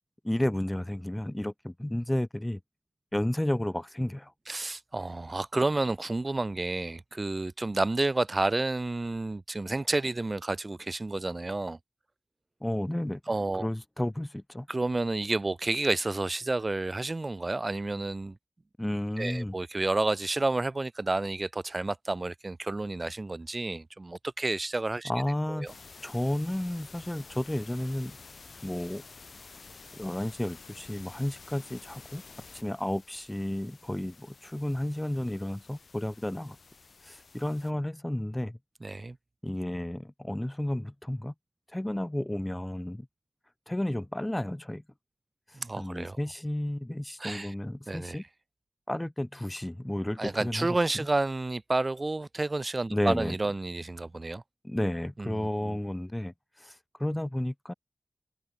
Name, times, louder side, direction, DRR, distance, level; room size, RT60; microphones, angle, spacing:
voice 1, 0.2-2.6 3.1-4.3 12.6-13.2 13.6-14.7 18.8-19.6 25.0-25.7 26.0-28.2 28.6-29.0 29.9-32.2 32.5-36.6 37.0-38.6 39.4-41.3 41.7-43.1 43.7-44.8 45.7-48.2 48.9-51.1 52.9-53.4 54.6-57.7, left 1 dB, 15° left, 2.1 m, -32 dB
voice 2, 4.5-11.8 13.3-13.7 14.7-18.4 19.2-25.1 25.5-25.7 38.8-39.2 45.5-46.2 47.2-47.5 47.9-48.2 50.2-54.4 55.2-55.8, right 2 dB, 35° right, 1.2 m, -30 dB
sound 1, 25.7-37.7, left 4 dB, 70° left, 6.3 m, -51 dB
wide cardioid pair, 85°, 0 cm